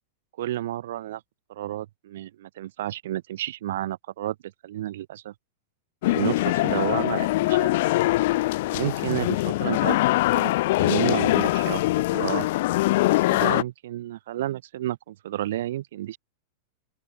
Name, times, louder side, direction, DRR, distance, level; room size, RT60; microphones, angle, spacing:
voice 1, 0.4-1.2 1.5-5.3 6.0-7.8 8.7-10.5 10.8-12.5 13.1-16.2, right 13 dB, 75° right, 5.8 m, -31 dB
sound 1, 6.0-13.6, left 18 dB, 60° left, 2.4 m, -23 dB
open air
supercardioid pair, 155°, 0 cm